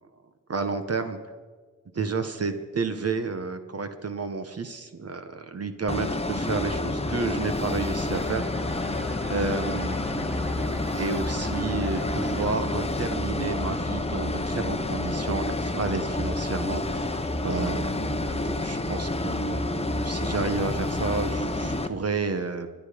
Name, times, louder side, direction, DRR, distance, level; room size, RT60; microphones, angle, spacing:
voice 1, 0.5-1.2 1.9-8.4 9.3-17.1 17.4-22.7, right 4 dB, 50° right, 8 dB, 1.1 m, -31 dB
sound 1, 5.9-21.9, left 2 dB, 20° left, 0.9 m, -29 dB
sound 2, 8.1-12.5, equal, 5° right, 1.9 m, -39 dB
26.0 x 11.0 x 5.1 m, 1.4 s
wide cardioid pair, 100°, 31 cm